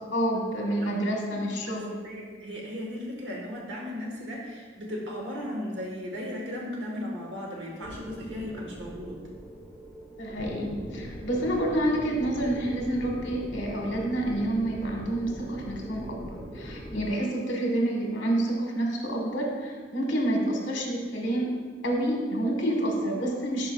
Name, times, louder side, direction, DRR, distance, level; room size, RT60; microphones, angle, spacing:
voice 1, 0.1-2.0 10.2-21.6 21.8-23.7, right 1 dB, 80° left, 0 dB, 1.3 m, -28 dB
voice 2, 2.0-9.2, left 1 dB, 75° right, -2 dB, 1.4 m, -36 dB
sound 1, 7.8-17.1, equal, 5° right, 1.1 m, -41 dB
10.5 x 4.5 x 2.3 m, 1.5 s
head